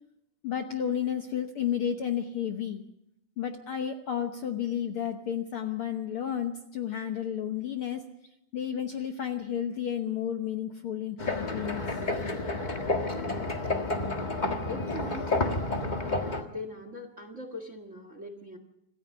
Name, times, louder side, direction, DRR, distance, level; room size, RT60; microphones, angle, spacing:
voice 1, 0.4-2.9 3.4-8.0 8.5-11.8, left 9 dB, 60° left, 5 dB, 1.5 m, -32 dB
sound 1, 11.2-16.4, left 2 dB, 40° left, 0.6 m, -30 dB
voice 2, 14.6-15.2 16.0-18.6, left 1 dB, 30° right, 8 dB, 1.5 m, -41 dB
26.5 x 14.5 x 7.0 m, 0.83 s
omnidirectional pair, 3.5 m